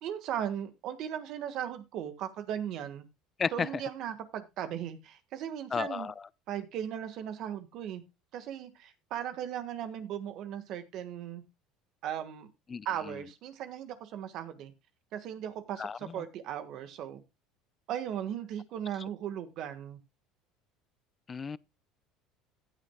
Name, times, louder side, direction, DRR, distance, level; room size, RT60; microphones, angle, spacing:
voice 1, 0.0-3.0 3.5-6.1 6.5-8.0 8.3-11.4 12.0-12.5 12.8-14.7 15.1-17.2 17.9-20.0, right 10 dB, 55° right, 1.5 m, -37 dB
voice 2, 3.4-3.7 5.7-6.1 12.7-13.2 15.8-16.1 21.3-21.6, left 5 dB, 25° left, 0.5 m, -33 dB
15.0 x 8.9 x 2.3 m
supercardioid pair, 120°, 0 cm